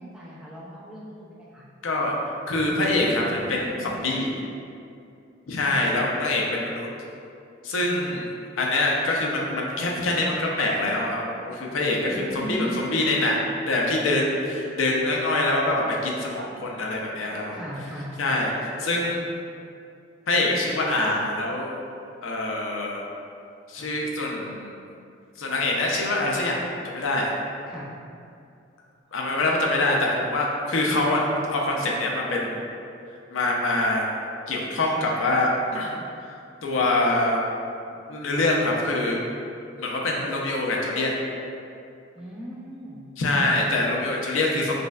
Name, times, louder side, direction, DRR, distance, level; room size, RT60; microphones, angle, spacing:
voice 1, 0.0-1.6 2.9-4.0 5.6-5.8 12.1-13.0 17.5-18.4 27.7-27.9 42.2-43.1, equal, 5° right, -8 dB, 0.5 m, -37 dB
voice 2, 1.8-3.2 3.5-4.3 5.5-6.9 7.6-8.3 8.6-17.6 18.2-18.5 18.8-19.2 20.3-21.7 22.2-23.0 23.7-24.7 25.4-27.3 29.1-32.7 33.3-34.1 34.5-35.9 36.2-36.3 36.6-37.4 38.1-39.2 39.8-41.1 43.2-44.8, left 2 dB, 90° left, -2 dB, 0.5 m, -25 dB
4.9 x 2.1 x 2.4 m, 2.5 s
head